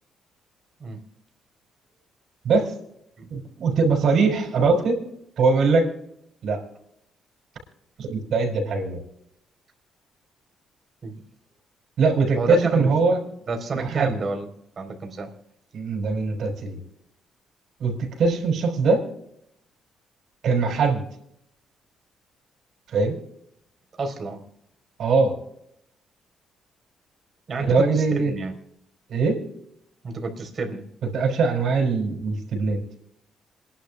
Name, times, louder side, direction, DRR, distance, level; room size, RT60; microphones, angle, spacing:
voice 1, 3.3-5.0 5.4-5.9 6.4-6.6 8.0-9.0 12.0-13.2 13.8-14.1 15.7-16.8 17.8-19.0 20.4-21.0 22.9-23.2 25.0-25.3 27.6-28.3 29.1-29.4 31.1-32.8, right 4 dB, 65° right, 1 dB, 5.8 m, -21 dB
voice 2, 12.4-12.9 13.5-14.5 14.8-15.3 24.0-24.5 27.5-28.5 30.0-30.9, right 3 dB, 45° right, 4 dB, 4.1 m, -30 dB
28.0 x 11.5 x 2.3 m, 0.75 s
cardioid pair, 90°, 0 cm